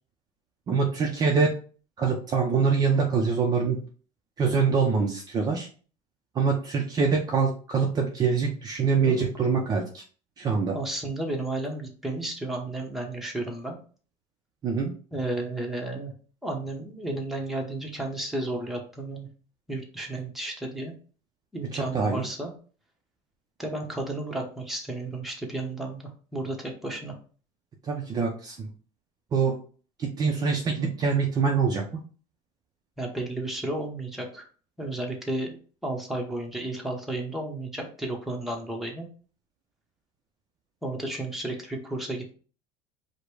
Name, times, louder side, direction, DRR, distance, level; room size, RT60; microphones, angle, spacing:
voice 1, 0.7-1.5 2.0-3.8 4.4-5.7 6.3-10.0 10.4-10.7 14.6-14.9 21.7-22.2 27.8-28.7 29.3-29.6 30.0-32.0, right 5 dB, 30° right, 1 dB, 0.6 m, -24 dB
voice 2, 10.7-13.8 15.1-16.1 16.4-19.3 19.7-20.9 21.5-22.5 23.6-27.1 33.0-34.5 34.8-39.1 40.8-42.3, right 2 dB, ahead, 0 dB, 0.9 m, -33 dB
5.0 x 2.2 x 4.6 m, 0.40 s
cardioid pair, 150°, 14 cm